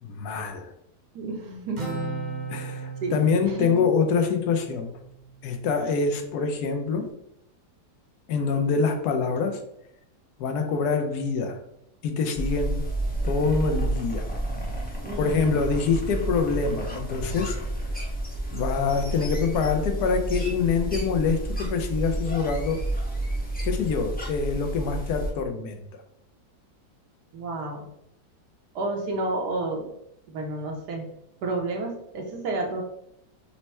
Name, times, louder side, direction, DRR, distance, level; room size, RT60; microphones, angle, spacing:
voice 1, 0.0-0.7 2.5-4.9 5.4-7.1 8.3-9.6 10.4-11.6 12.0-12.8 13.2-14.3 15.2-17.6 18.5-22.8 23.6-25.8, left 5 dB, 80° left, 5 dB, 1.1 m, -25 dB
voice 2, 1.1-1.8 3.0-3.2 3.6-3.7 15.0-15.5 27.3-27.9 28.7-29.9 30.3-31.1 31.4-32.8, right 2 dB, 85° right, 2 dB, 1.4 m, -30 dB
Acoustic guitar, 1.8-5.4, right 3 dB, 40° right, 0.7 m, -36 dB
sound 1, 12.3-25.3, right 1 dB, 15° left, 0.4 m, -30 dB
4.3 x 2.0 x 4.2 m, 0.77 s
omnidirectional pair, 1.7 m